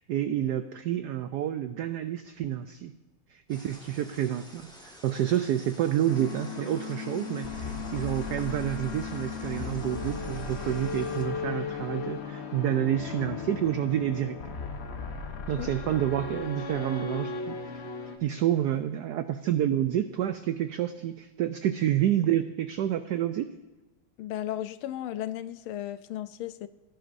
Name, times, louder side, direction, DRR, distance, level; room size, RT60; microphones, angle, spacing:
voice 1, 0.0-2.9 3.3-14.6 15.5-17.6 18.2-23.5, right 11 dB, 90° right, 0.9 m, -29 dB
sound 1, 3.5-11.2, equal, ahead, 1.2 m, -51 dB
sound 2, 6.1-18.2, left 5 dB, 45° left, 0.9 m, -36 dB
voice 2, 24.2-26.7, left 12 dB, 80° left, 1.4 m, -35 dB
18.5 x 10.5 x 2.6 m
omnidirectional pair, 2.3 m